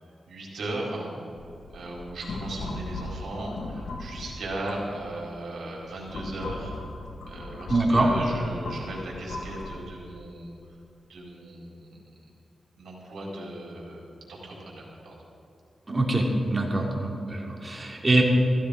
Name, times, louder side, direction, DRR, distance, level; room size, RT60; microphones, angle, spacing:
voice 1, 0.3-1.1 1.7-6.7 7.3-10.5 11.1-12.0 12.8-14.0 14.3-15.1, right 1 dB, 80° right, -4 dB, 4.3 m, -37 dB
sound 1, 1.4-5.2 5.8-9.7, left 2 dB, 85° left, 1.8 m, -38 dB
voice 2, 7.7-8.1 15.9-18.2, right 2 dB, 30° right, 0 dB, 2.8 m, -24 dB
15.5 x 15.0 x 5.0 m, 2.5 s
cardioid pair, 85°, 0 cm